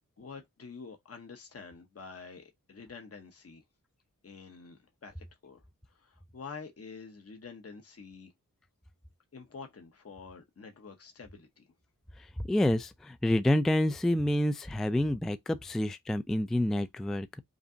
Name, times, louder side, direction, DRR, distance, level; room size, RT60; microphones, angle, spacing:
voice 1, 0.2-3.6 4.2-5.6 5.9-8.3 9.3-11.7, left 5 dB, 45° left, 0.9 m, -48 dB
voice 2, 12.5-17.4, left 1 dB, ahead, 0.3 m, -28 dB
5.0 x 2.6 x 2.6 m
wide cardioid pair, 95°, 34 cm